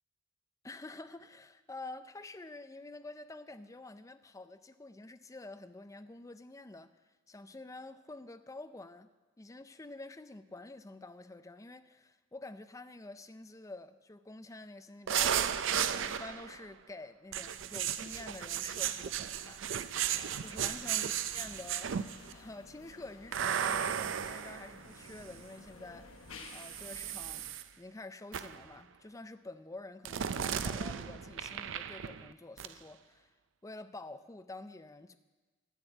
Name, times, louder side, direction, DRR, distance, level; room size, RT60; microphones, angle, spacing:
voice 1, 0.6-9.1 9.4-15.7 15.9-19.9 20.4-21.9 22.3-27.5 27.8-33.3 33.6-35.1, left 2 dB, 15° left, 11 dB, 0.4 m, -48 dB
sound 1, 15.1-16.6 17.3-22.3 23.3-25.5 26.4-27.6 28.3-28.7 30.1-32.3 32.6-32.7, right 9 dB, 65° right, 0.5 m, -35 dB
sound 2, 19.9-27.5, left 3 dB, 80° left, 1.1 m, -54 dB
11.0 x 7.3 x 8.0 m, 1.3 s
head